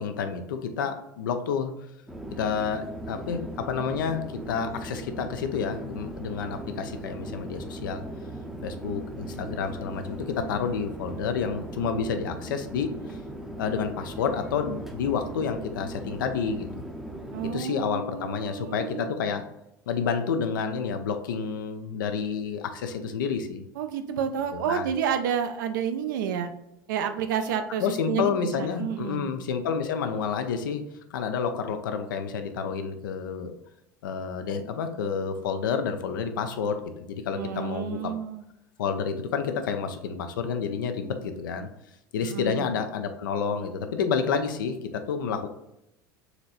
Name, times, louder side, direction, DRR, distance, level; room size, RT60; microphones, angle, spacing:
voice 1, 0.0-1.7 2.3-8.0 8.6-13.2 13.6-16.7 17.4-19.5 19.9-23.7 24.5-24.9 27.8-30.8 31.1-33.5 34.0-38.1 38.8-41.7 42.1-45.5, left 6 dB, 65° left, 7 dB, 0.4 m, -29 dB
Chatter / Fixed-wing aircraft airplane, 2.1-17.5, right 1 dB, 5° right, 0.6 m, -38 dB
voice 2, 17.3-19.1 23.8-26.5 26.9-29.3 37.3-38.4 42.3-42.7, right 8 dB, 60° right, 8 dB, 0.5 m, -30 dB
4.0 x 3.0 x 2.5 m, 0.85 s
figure-of-eight pair, 75°, 12 cm